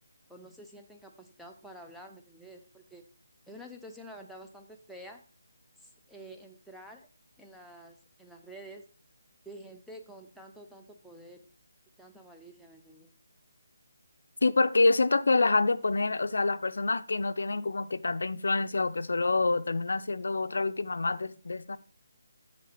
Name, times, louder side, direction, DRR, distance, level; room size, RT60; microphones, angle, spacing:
voice 1, 0.3-3.0 3.5-5.2 5.8-7.1 7.4-8.9 9.5-11.5 12.0-13.1, right 1 dB, ahead, 0.5 m, -49 dB
voice 2, 14.4-21.8, left 3 dB, 75° left, 0.5 m, -27 dB
7.5 x 5.3 x 4.0 m
hypercardioid pair, 170°, 0 cm